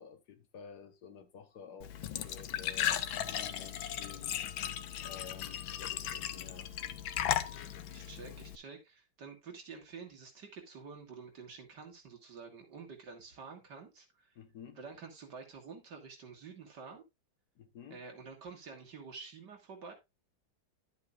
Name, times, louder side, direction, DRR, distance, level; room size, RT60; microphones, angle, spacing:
voice 1, 0.0-2.0 2.2-2.9 3.2-4.4 5.0-6.7 14.4-14.8 17.6-18.0, left 7 dB, 60° left, 1.5 m, -51 dB
Glass / Trickle dribble / Fill (with liquid), 1.8-8.6, left 10 dB, 85° left, 1.6 m, -36 dB
voice 2, 7.9-14.3 14.8-17.0 17.9-19.9, right 5 dB, 60° right, 2.6 m, -49 dB
11.5 x 7.9 x 2.5 m
omnidirectional pair, 2.1 m